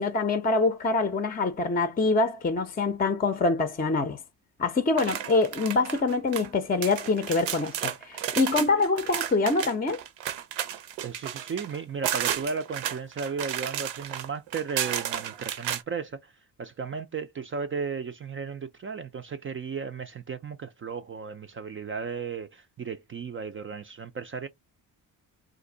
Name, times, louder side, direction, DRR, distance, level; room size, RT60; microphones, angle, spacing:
voice 1, 0.0-4.2 4.6-10.0, left 3 dB, 20° left, 0.5 m, -25 dB
sound 1, 4.9-6.5 6.8-15.8, right 10 dB, 80° right, 0.7 m, -33 dB
voice 2, 11.0-16.3 16.6-24.5, right 5 dB, 30° right, 0.4 m, -35 dB
2.6 x 2.5 x 3.8 m
supercardioid pair, 65°, 44 cm